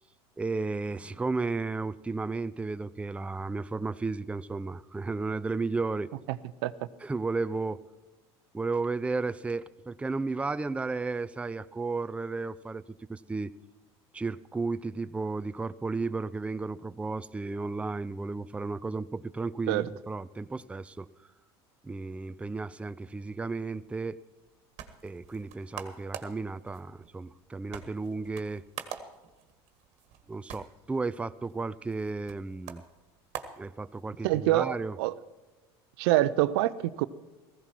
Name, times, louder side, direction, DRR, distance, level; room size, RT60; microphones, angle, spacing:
voice 1, 0.4-6.1 7.0-7.8 8.5-12.8 13.1-13.5 14.1-21.1 21.8-24.2 25.0-28.6 30.3-32.8 33.6-35.0, right 3 dB, 10° right, 14 dB, 0.4 m, -33 dB
sound 1, 24.4-34.3, right 9 dB, 55° right, 1.6 m, -46 dB
voice 2, 34.2-35.1 36.0-37.1, right 15 dB, 75° right, 15 dB, 0.6 m, -25 dB
15.5 x 15.5 x 4.6 m, 1.2 s
hypercardioid pair, 85°, 13 cm